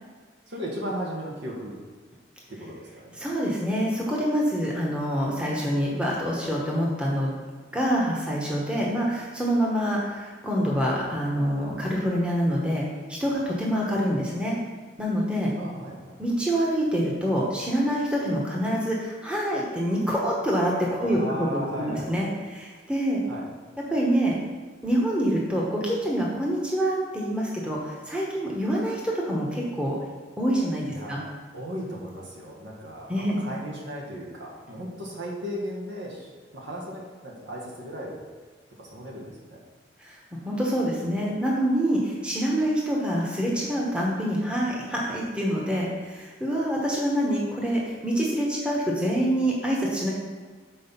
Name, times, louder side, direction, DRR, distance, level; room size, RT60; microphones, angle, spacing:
voice 1, 0.5-1.7 2.5-3.2 15.5-16.2 21.0-22.1 23.3-23.5 30.9-31.2 31.5-38.2 38.8-39.6, equal, 75° right, -3 dB, 1.6 m, -36 dB
voice 2, 3.2-7.3 7.7-14.5 15.0-15.5 16.2-21.2 21.5-23.2 23.9-24.4 24.8-30.0 30.4-31.2 33.1-33.4 40.0-40.2 40.4-50.1, equal, 5° right, -4 dB, 1.0 m, -26 dB
6.2 x 4.5 x 5.5 m, 1.5 s
head